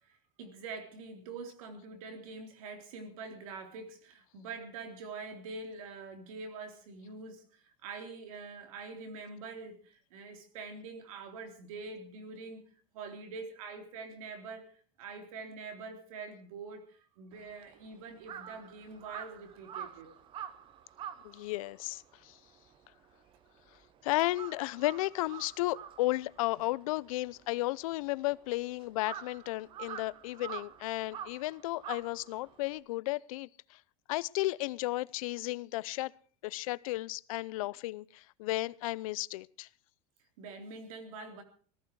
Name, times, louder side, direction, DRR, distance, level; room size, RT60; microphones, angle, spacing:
voice 1, 0.0-12.6 12.9-20.2 40.4-41.4, right 4 dB, 80° right, 3.7 m, -45 dB
Crow, 17.3-23.9 24.2-32.8, right 9 dB, 30° right, 1.0 m, -47 dB
voice 2, 21.2-22.4 24.0-33.8 34.1-36.1 36.4-39.7, left 19 dB, 80° left, 0.6 m, -34 dB
18.0 x 14.0 x 4.7 m
supercardioid pair, 160°, 18 cm